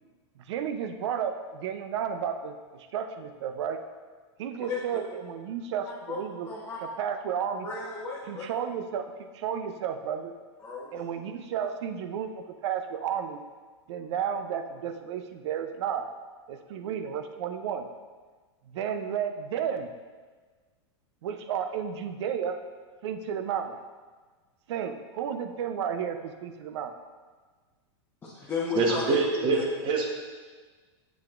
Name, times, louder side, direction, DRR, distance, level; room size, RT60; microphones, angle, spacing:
voice 1, 0.5-3.8 4.4-6.5 7.0-7.7 8.3-10.3 10.9-13.4 13.9-16.1 16.5-17.9 18.7-19.9 21.2-22.6 23.0-23.8 24.7-26.9, right 8 dB, 70° right, 8 dB, 0.6 m, -32 dB
voice 2, 6.5-6.8 7.6-8.4 10.6-10.9 28.2-29.2 29.5-29.6, left 5 dB, 15° left, -6 dB, 1.1 m, -33 dB
voice 3, 28.7-30.2, right 3 dB, 35° right, 2 dB, 1.1 m, -25 dB
7.5 x 7.2 x 2.5 m, 1.4 s
hypercardioid pair, 130°, 15 cm